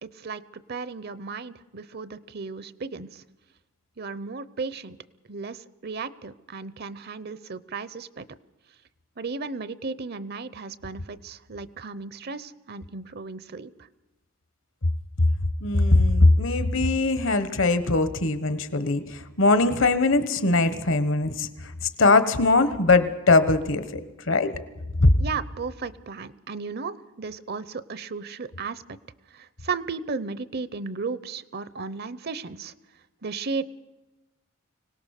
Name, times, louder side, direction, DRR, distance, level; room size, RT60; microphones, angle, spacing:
voice 1, 0.0-3.2 4.0-5.0 5.3-8.2 9.2-13.7 25.2-29.0 29.3-32.7 33.2-33.6, right 4 dB, 50° right, 16 dB, 0.7 m, -35 dB
voice 2, 15.6-21.5 22.0-24.5 25.0-25.1, left 2 dB, 65° left, 12 dB, 1.3 m, -21 dB
24.5 x 18.0 x 6.6 m, 1.1 s
head